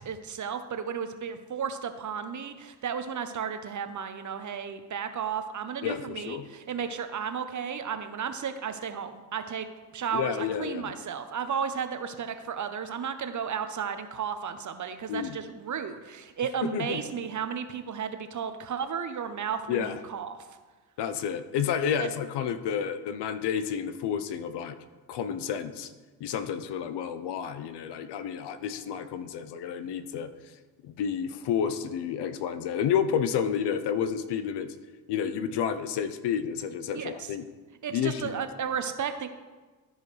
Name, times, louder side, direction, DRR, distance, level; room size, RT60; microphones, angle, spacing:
voice 1, 0.0-9.7 9.9-20.4 22.0-22.1 36.9-37.3 37.8-39.3, right 7 dB, 40° right, 9 dB, 0.9 m, -33 dB
voice 2, 5.8-6.5 10.1-10.9 15.1-15.4 16.6-17.0 19.7-20.0 21.0-24.8 25.1-25.9 26.2-30.3 30.8-34.7 35.1-37.5 37.9-38.4, left 8 dB, 60° left, 11 dB, 0.8 m, -30 dB
13.5 x 4.8 x 3.3 m, 1.3 s
hypercardioid pair, 50°, 48 cm